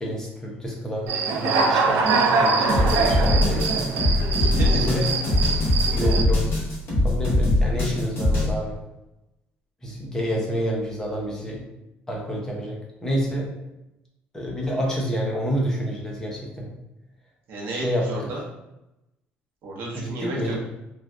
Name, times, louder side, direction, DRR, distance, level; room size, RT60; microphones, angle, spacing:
voice 1, 0.0-4.2 4.7-5.1 5.9-6.5 7.0-8.7 9.8-11.6 12.1-13.5 14.3-16.7 17.7-18.1 19.9-20.6, equal, 10° left, -2 dB, 0.6 m, -28 dB
Human voice / Cricket, 1.1-6.2, right 4 dB, 80° right, 0.3 m, -23 dB
sound 1, 2.7-8.5, left 1 dB, 60° left, 1.4 m, -22 dB
voice 2, 4.3-4.9 17.5-18.4 19.6-20.6, right 2 dB, 60° right, -2 dB, 0.8 m, -33 dB
3.2 x 2.3 x 2.5 m, 0.92 s
cardioid pair, 165°, 4 cm